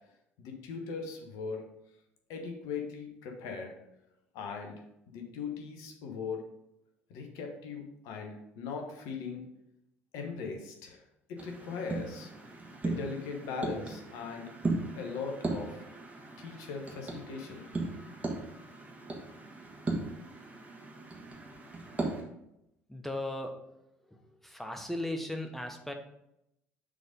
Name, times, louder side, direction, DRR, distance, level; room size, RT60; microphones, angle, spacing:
voice 1, 0.4-1.6 2.3-3.7 4.3-4.8 5.1-6.4 7.1-9.4 10.1-11.0 11.3-12.3 12.8-14.5 14.9-15.9 16.4-17.7, left 5 dB, 60° left, 2 dB, 1.1 m, -39 dB
sound 1, 11.4-22.2, right 2 dB, 20° right, 1.6 m, -38 dB
voice 2, 22.9-23.6 24.0-25.9, left 1 dB, 5° left, 4 dB, 1.0 m, -37 dB
6.5 x 4.0 x 5.1 m, 0.84 s
figure-of-eight pair, 55°, 7 cm